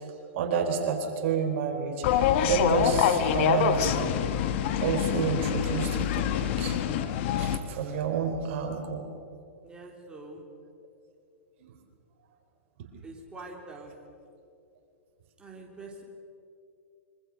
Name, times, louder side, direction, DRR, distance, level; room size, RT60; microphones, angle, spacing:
voice 1, 0.3-1.9 2.5-4.2 4.8-6.8 7.4-9.1, right 6 dB, 55° right, 4 dB, 4.5 m, -29 dB
sound 1, 2.0-7.6, left 9 dB, 55° left, 1.7 m, -26 dB
voice 2, 9.6-10.4 13.0-13.9 15.4-16.0, right 2 dB, 10° right, -1 dB, 3.7 m, -44 dB
26.0 x 25.0 x 6.6 m, 2.5 s
hypercardioid pair, 125°, 8 cm